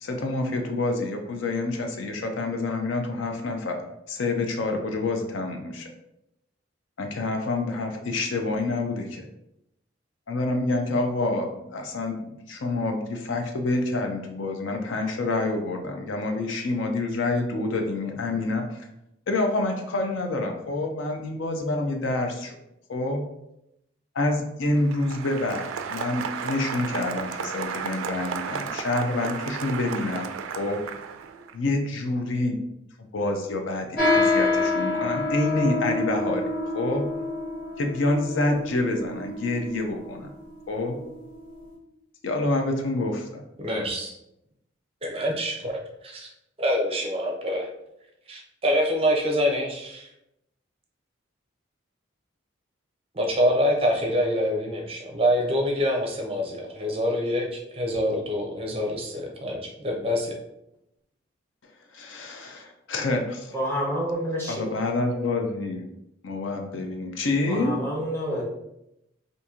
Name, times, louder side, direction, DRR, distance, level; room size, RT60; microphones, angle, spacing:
voice 1, 0.0-3.8 4.1-5.9 7.0-9.2 10.3-18.9 19.3-22.6 22.9-23.2 24.1-30.3 30.6-30.8 31.5-32.6 33.1-37.0 37.8-40.3 40.7-41.0 42.2-43.4 61.9-63.6 64.5-65.9 66.2-67.8, left 2 dB, 70° left, 4 dB, 0.5 m, -27 dB
Applause, 24.6-31.5, right 6 dB, 85° right, 0.3 m, -34 dB
sound 1, 34.0-41.7, left 2 dB, 45° left, 0.9 m, -27 dB
voice 2, 43.6-44.1 45.0-46.3 46.6-47.7 48.3-50.1 53.1-60.4, equal, 30° right, 0 dB, 0.5 m, -26 dB
voice 3, 63.5-64.7 67.5-68.4, equal, 10° left, -4 dB, 0.8 m, -28 dB
2.8 x 2.6 x 3.6 m, 0.84 s
head